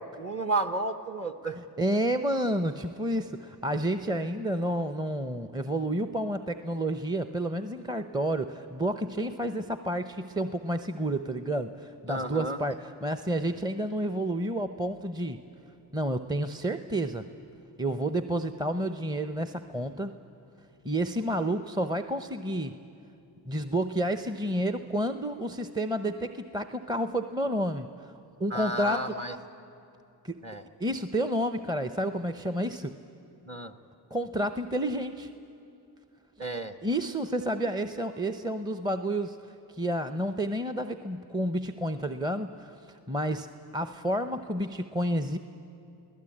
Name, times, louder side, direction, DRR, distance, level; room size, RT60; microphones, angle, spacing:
voice 1, 0.0-1.6 12.1-12.6 28.5-29.4 30.4-30.6 33.5-33.7 36.4-36.8, right 2 dB, 30° right, 8 dB, 1.2 m, -32 dB
voice 2, 1.5-15.4 15.9-17.3 17.8-20.1 20.8-22.8 23.5-28.1 28.4-29.2 30.2-30.4 30.8-33.0 34.1-35.3 36.8-39.4 39.7-45.4, right 1 dB, 10° right, 9 dB, 0.8 m, -30 dB
23.5 x 17.0 x 8.7 m, 2.7 s
hypercardioid pair, 45°, 49 cm